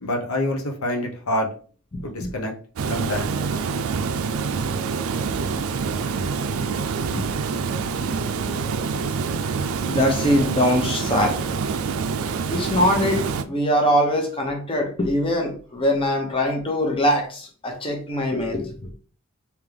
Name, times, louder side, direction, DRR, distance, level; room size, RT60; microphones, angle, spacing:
voice 1, 0.0-1.5 2.0-2.5 2.9-3.3, left 1 dB, 80° left, 1 dB, 0.9 m, -26 dB
voice 2, 1.9-2.3 7.1-7.2 9.8-11.4 12.5-18.8, equal, 25° left, 2 dB, 0.8 m, -22 dB
Water, 2.8-13.4, right 5 dB, 75° right, 0.4 m, -26 dB
3.6 x 2.9 x 3.3 m, 0.41 s
head